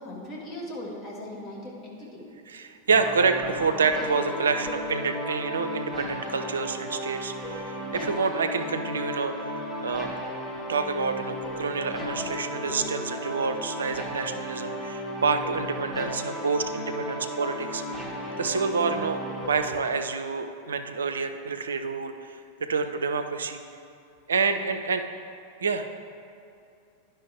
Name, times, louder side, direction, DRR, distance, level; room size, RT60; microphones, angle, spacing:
voice 1, 0.0-2.3, left 1 dB, 25° left, -4 dB, 1.8 m, -38 dB
voice 2, 2.5-9.5 9.8-10.2 10.7-18.0 18.4-23.6 24.3-25.0 25.6-25.9, right 5 dB, 70° right, 8 dB, 0.4 m, -28 dB
sound 1, 2.9-19.7, equal, 5° left, 1.0 m, -34 dB
10.0 x 5.6 x 3.4 m, 2.5 s
figure-of-eight pair, 90°, 0 cm